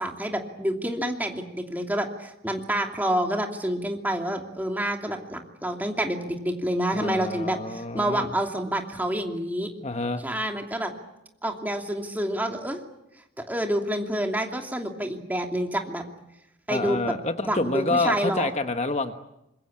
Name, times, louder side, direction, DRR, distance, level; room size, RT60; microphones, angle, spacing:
voice 1, 0.0-9.7 10.2-10.9 11.4-12.8 13.5-16.0 16.7-17.1 17.4-18.5, right 1 dB, 10° right, 3 dB, 2.7 m, -28 dB
voice 2, 6.9-8.3 9.8-10.2 16.7-19.1, left 2 dB, 35° left, 8 dB, 1.2 m, -28 dB
25.5 x 22.5 x 8.7 m, 0.87 s
head